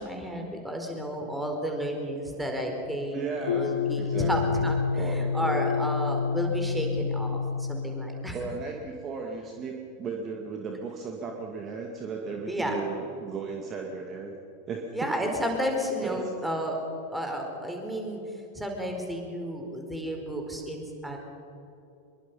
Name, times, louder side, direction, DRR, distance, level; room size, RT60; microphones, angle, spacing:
voice 1, 0.0-8.4 12.5-12.8 14.9-16.8 17.1-18.2 18.5-21.2, equal, 5° right, 2 dB, 4.6 m, -32 dB
voice 2, 3.1-5.7 8.3-14.3 14.7-15.3 16.0-16.3, right 4 dB, 30° right, 2 dB, 2.3 m, -36 dB
sound 1, 3.5-8.7, left 5 dB, 60° left, 0.9 m, -28 dB
25.5 x 23.0 x 5.6 m, 2.8 s
figure-of-eight pair, 90°, 0 cm